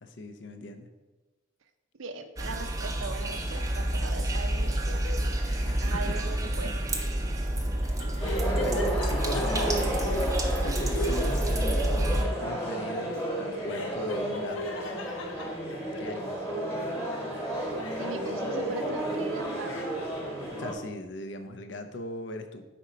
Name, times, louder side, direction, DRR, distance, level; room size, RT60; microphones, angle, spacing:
voice 1, 0.0-0.9 5.9-6.2 6.6-6.8 7.8-7.9 8.5-9.9 10.6-11.7 12.2-14.7 16.0-16.5 20.6-22.7, left 1 dB, 65° left, 8 dB, 0.6 m, -38 dB
voice 2, 2.0-5.0 5.8-6.7 18.0-19.9, right 3 dB, 80° right, 9 dB, 0.6 m, -39 dB
sound 1, 2.4-12.2, right 1 dB, 15° right, 0.5 m, -28 dB
sound 2, 3.5-16.5 16.9-19.1 19.4-20.3, left 2 dB, 90° left, 0.9 m, -42 dB
sound 3, 8.2-20.7, right 1 dB, 15° left, 1.3 m, -32 dB
5.2 x 4.3 x 5.0 m, 1.2 s
head